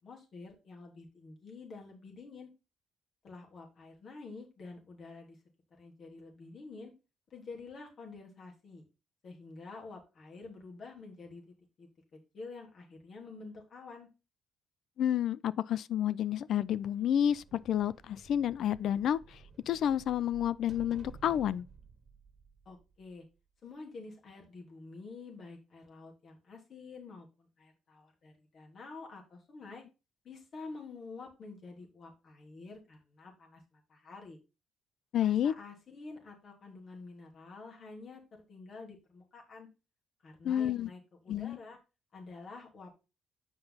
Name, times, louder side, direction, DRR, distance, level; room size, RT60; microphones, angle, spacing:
voice 1, 0.0-2.5 3.2-5.4 5.8-6.9 7.3-8.8 9.2-14.1 22.6-23.2 23.6-29.8 30.2-34.4 35.2-39.7 40.2-41.8 42.1-42.9, left 3 dB, 55° left, 3.2 m, -49 dB
voice 2, 15.0-19.4 19.7-21.7 35.1-35.5 40.4-40.9 41.3-41.6, left 10 dB, 70° left, 0.4 m, -30 dB
sound 1, 16.6-23.3, right 4 dB, 35° right, 1.6 m, -54 dB
8.0 x 5.4 x 4.0 m
cardioid pair, 90°, 0 cm